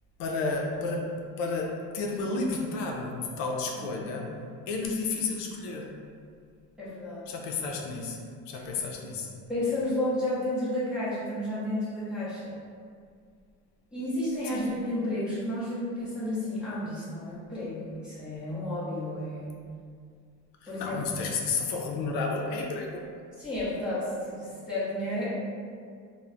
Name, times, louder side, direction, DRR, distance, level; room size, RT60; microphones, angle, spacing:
voice 1, 0.2-4.3 4.7-5.9 7.3-8.2 8.5-9.3 14.4-14.7 20.6-23.0, left 3 dB, 70° left, 0 dB, 0.5 m, -32 dB
voice 2, 6.8-7.2 9.5-12.5 13.9-19.5 20.7-21.0 23.4-25.3, left 1 dB, 5° right, -11 dB, 0.6 m, -31 dB
2.2 x 2.1 x 3.7 m, 2.2 s
cardioid pair, 160°, 35 cm